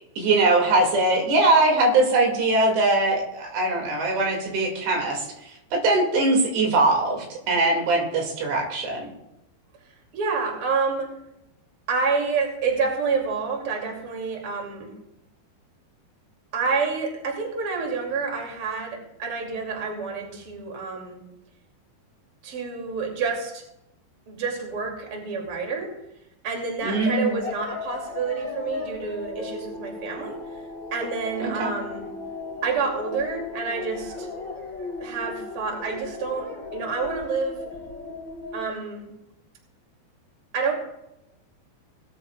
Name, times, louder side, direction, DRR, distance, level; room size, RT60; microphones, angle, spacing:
voice 1, 0.2-5.3 5.7-9.1 26.8-27.4 31.4-31.7, right 2 dB, 75° right, 0 dB, 4.5 m, -21 dB
voice 2, 10.1-11.1 11.9-14.9 16.5-21.2 22.4-23.6 24.3-25.9 26.4-30.4 30.9-32.1 32.6-34.3 35.0-36.5 36.7-37.6 38.5-39.1 40.5-40.7, right 5 dB, 35° right, 0 dB, 3.1 m, -28 dB
sound 1, 26.8-38.7, left 3 dB, 25° left, 5.2 m, -36 dB
20.0 x 13.0 x 2.4 m, 0.85 s
omnidirectional pair, 4.9 m